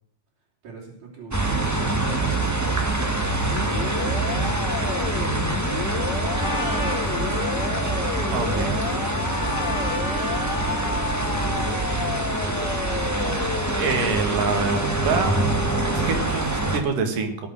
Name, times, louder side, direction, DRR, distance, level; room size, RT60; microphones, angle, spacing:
voice 1, 0.6-3.2 3.8-5.4 6.2-6.8 8.4-9.9 10.4-11.2 11.5-12.8, right 4 dB, 55° right, -4 dB, 4.7 m, -42 dB
sound 1, 1.3-16.8, right 2 dB, 15° right, 0.5 m, -25 dB
sound 2, 3.3-16.1, left 5 dB, 70° left, 1.0 m, -32 dB
Trumpet, 6.3-11.8, left 1 dB, 25° left, 3.9 m, -33 dB
voice 2, 8.3-8.7 13.3-13.5 13.7-15.4 16.0-17.5, right 4 dB, 90° right, 5 dB, 3.9 m, -26 dB
18.0 x 8.4 x 7.7 m, 0.67 s
omnidirectional pair, 3.7 m